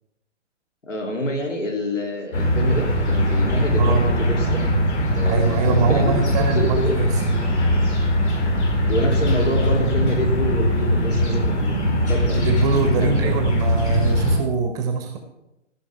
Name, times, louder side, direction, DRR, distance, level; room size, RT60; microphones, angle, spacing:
voice 1, 0.9-4.6 4.9-6.1 6.5-7.0 8.9-12.5 13.0-13.4, left 1 dB, 90° left, 2 dB, 2.9 m, -27 dB
sound 1, 2.3-14.4, equal, 65° left, 5.1 m, -20 dB
voice 2, 3.8-4.1 5.2-7.2 12.3-15.2, right 4 dB, 10° right, 5 dB, 0.6 m, -23 dB
14.5 x 5.5 x 6.7 m, 0.93 s
figure-of-eight pair, 140°, 36 cm